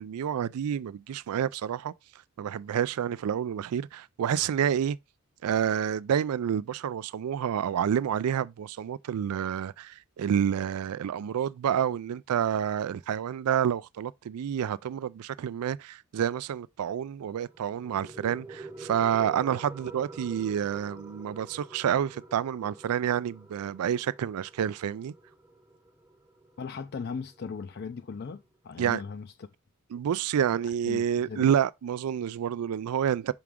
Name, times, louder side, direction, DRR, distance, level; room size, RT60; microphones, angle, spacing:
voice 1, 0.0-1.9 2.4-5.0 5.4-25.1 28.8-29.0 29.9-33.3, right 8 dB, 90° right, 0.3 m, -29 dB
sound 1, 17.2-28.2, right 2 dB, 10° right, 0.6 m, -48 dB
voice 2, 26.6-29.5 30.9-31.5, left 5 dB, 45° left, 0.4 m, -38 dB
5.9 x 4.7 x 3.6 m
head